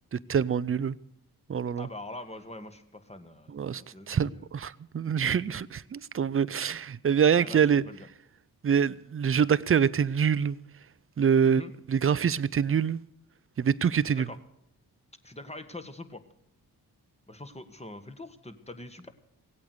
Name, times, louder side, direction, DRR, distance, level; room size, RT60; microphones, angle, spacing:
voice 1, 0.1-0.9 1.5-1.9 3.5-3.8 4.1-7.8 8.6-10.6 11.2-11.6 11.9-13.0 13.6-14.3, right 7 dB, 35° right, 0.6 m, -25 dB
voice 2, 1.8-4.5 7.3-8.1 11.4-11.7 14.0-14.4 15.2-16.2 17.3-19.1, left 2 dB, 15° left, 1.7 m, -44 dB
16.5 x 8.6 x 8.1 m
supercardioid pair, 45°, 39 cm